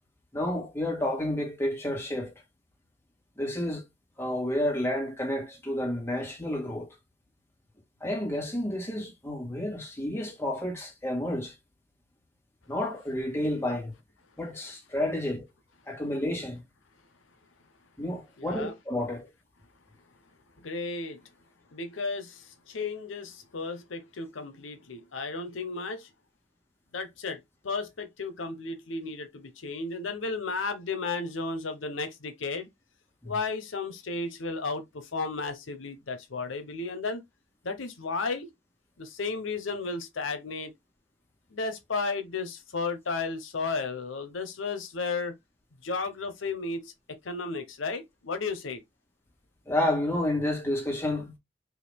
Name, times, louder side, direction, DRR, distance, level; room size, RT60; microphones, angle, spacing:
voice 1, 0.3-2.3 3.4-3.8 4.2-6.9 8.0-11.5 12.7-13.9 14.4-15.4 15.9-16.6 18.0-19.3 33.2-33.3 49.7-51.3, left 1 dB, 15° left, 1.5 m, -30 dB
voice 2, 18.4-18.7 20.6-21.2 21.7-26.1 26.9-32.7 33.2-37.2 37.6-38.5 39.0-40.7 41.5-45.3 45.8-46.9 47.2-48.8, left 4 dB, 85° left, 0.8 m, -33 dB
4.7 x 2.5 x 3.4 m
head